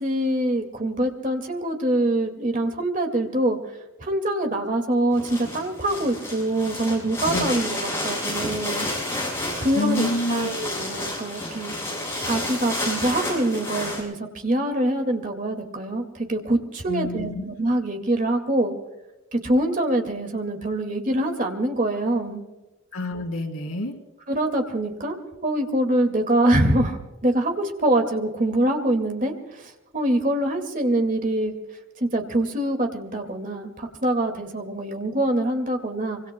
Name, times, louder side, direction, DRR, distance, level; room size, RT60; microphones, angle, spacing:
voice 1, 0.0-3.6 4.0-8.9 9.6-18.7 19.3-22.4 24.3-25.2 25.4-31.5 32.0-36.2, right 1 dB, 40° right, 5 dB, 2.0 m, -24 dB
sound 1, 5.1-14.0, left 1 dB, 10° left, 6.7 m, -30 dB
voice 2, 9.6-10.5 16.9-17.4 22.9-23.9, left 1 dB, 90° left, 2 dB, 3.0 m, -28 dB
25.0 x 25.0 x 2.2 m, 1.1 s
head